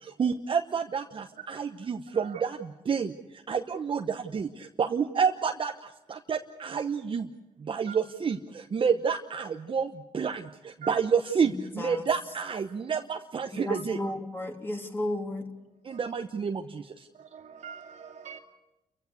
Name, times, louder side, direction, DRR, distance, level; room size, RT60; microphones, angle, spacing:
voice 1, 0.0-7.3 7.6-14.0 15.8-17.1, right 6 dB, 40° right, 5 dB, 1.0 m, -29 dB
voice 2, 11.4-12.1 13.5-15.4, left 1 dB, 15° left, 2 dB, 3.1 m, -33 dB
voice 3, 17.1-18.4, right 6 dB, 65° right, 2 dB, 2.4 m, -44 dB
29.5 x 15.5 x 8.1 m, 1.0 s
cardioid pair, 95°, 13 cm